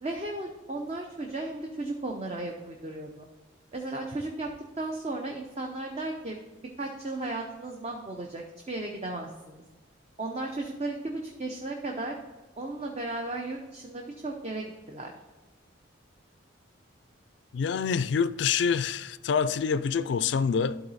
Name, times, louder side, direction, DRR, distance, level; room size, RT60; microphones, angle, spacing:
voice 1, 0.0-3.2 3.7-6.4 6.8-9.6 10.2-12.2 12.6-15.1, right 2 dB, 30° right, 0.6 m, -35 dB
voice 2, 17.5-20.8, left 6 dB, 60° left, 0.3 m, -26 dB
12.0 x 4.0 x 4.0 m
head